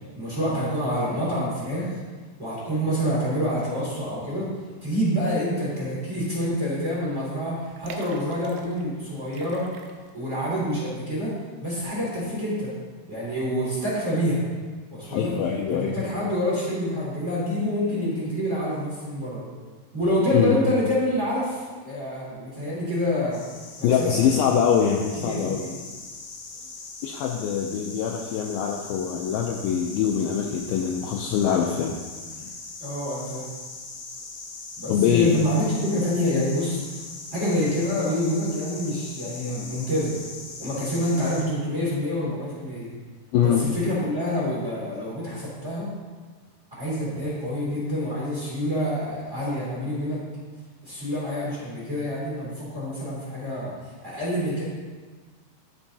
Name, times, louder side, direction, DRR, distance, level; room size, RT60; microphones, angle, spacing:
voice 1, 0.1-2.0 2.4-4.5 4.8-9.7 10.1-11.3 11.6-12.7 13.1-14.4 14.9-15.3 15.7-19.4 19.9-23.4 23.8-24.3 25.2-25.7 32.8-33.5 34.8-36.8 37.3-40.2 40.6-42.9 43.4-45.9 46.8-50.2 50.8-53.7 54.0-54.6, equal, 20° right, -9 dB, 2.1 m, -27 dB
sound 1, 6.9-7.0 7.7-8.9 9.3-10.3 10.7-10.8, right 6 dB, 80° right, 2.4 m, -43 dB
voice 2, 15.0-16.0 20.3-20.6 23.8-25.8 27.0-31.9 32.4-32.5 34.9-35.3 43.3-43.6, left 8 dB, 90° left, 0 dB, 2.1 m, -23 dB
sound 2, 23.3-41.4, left 3 dB, 60° left, 2.4 m, -40 dB
13.0 x 5.4 x 2.8 m, 1.4 s
omnidirectional pair, 4.8 m